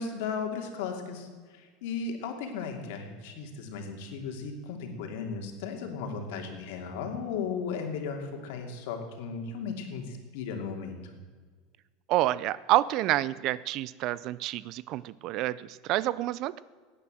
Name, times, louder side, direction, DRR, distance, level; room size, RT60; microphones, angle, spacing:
voice 1, 0.0-11.0, left 5 dB, 70° left, 3 dB, 2.8 m, -36 dB
voice 2, 12.1-16.6, right 15 dB, 45° right, 18 dB, 0.4 m, -28 dB
17.5 x 9.7 x 7.7 m, 1.5 s
supercardioid pair, 150°, 0 cm